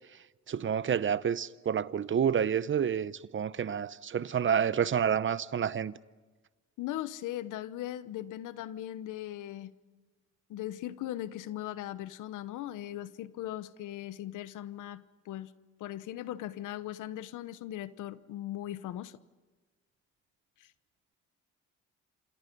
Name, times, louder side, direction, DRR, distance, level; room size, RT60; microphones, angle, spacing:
voice 1, 0.5-5.9, right 8 dB, 40° right, 0.8 m, -29 dB
voice 2, 6.8-9.7 10.5-15.5 15.8-19.2 20.6-20.7, left 13 dB, 85° left, 1.0 m, -39 dB
27.5 x 27.5 x 5.4 m
cardioid pair, 90°, 30 cm